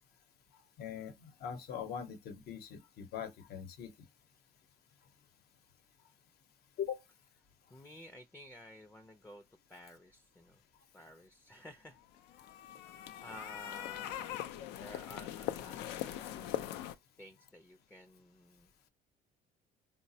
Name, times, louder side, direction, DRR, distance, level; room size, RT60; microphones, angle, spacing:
voice 1, 0.8-3.9 6.8-7.0, left 8 dB, 70° left, 0.8 m, -41 dB
voice 2, 7.7-10.6 10.9-12.0 12.3-12.5 13.2-16.6 17.2-18.7, equal, 10° left, 0.4 m, -53 dB
sound 1, 12.2-16.9, left 12 dB, 90° left, 0.4 m, -41 dB
4.0 x 2.1 x 2.7 m
cardioid pair, 110°, 17 cm